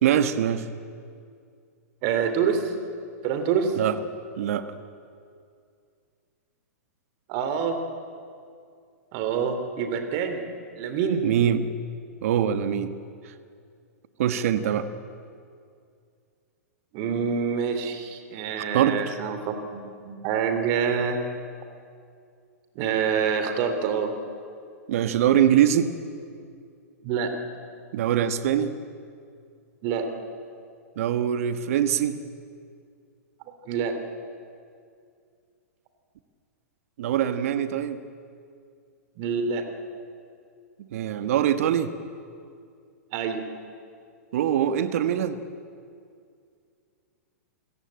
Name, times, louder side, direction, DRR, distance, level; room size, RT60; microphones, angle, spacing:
voice 1, 0.0-0.7 3.8-4.0 4.4-4.7 11.2-11.7 12.2-12.9 14.2-14.9 18.7-19.2 24.9-25.9 27.9-28.7 31.0-32.2 37.0-38.0 40.8-41.9 44.3-45.4, right 10 dB, 60° right, 11 dB, 1.4 m, -23 dB
voice 2, 2.0-2.7 3.2-3.8 7.3-7.8 9.1-10.5 10.8-11.2 16.9-19.8 20.0-21.2 22.7-24.1 27.0-27.3 29.8-30.1 33.7-34.0 39.2-39.6 43.1-43.4, right 6 dB, 45° right, 7 dB, 3.1 m, -26 dB
27.0 x 14.5 x 8.9 m, 2.3 s
hypercardioid pair, 115°, 9 cm